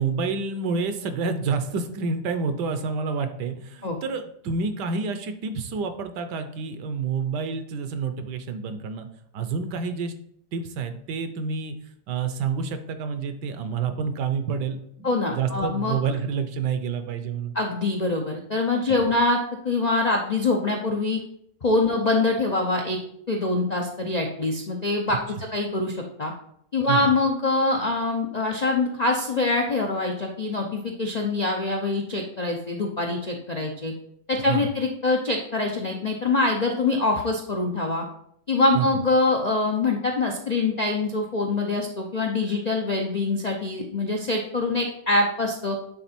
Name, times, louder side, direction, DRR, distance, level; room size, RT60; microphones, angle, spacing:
voice 1, 0.0-9.1 9.3-10.1 10.5-11.8 12.1-17.5 26.9-27.1 34.5-34.7 38.7-38.9, right 5 dB, 75° right, 9 dB, 1.3 m, -28 dB
voice 2, 15.0-16.0 17.5-19.4 19.6-21.2 21.6-23.0 23.3-25.2 25.5-26.3 26.7-33.9 34.3-38.0 38.5-45.8, left 2 dB, 70° left, 1 dB, 0.3 m, -24 dB
9.2 x 3.8 x 4.3 m, 0.71 s
omnidirectional pair, 1.9 m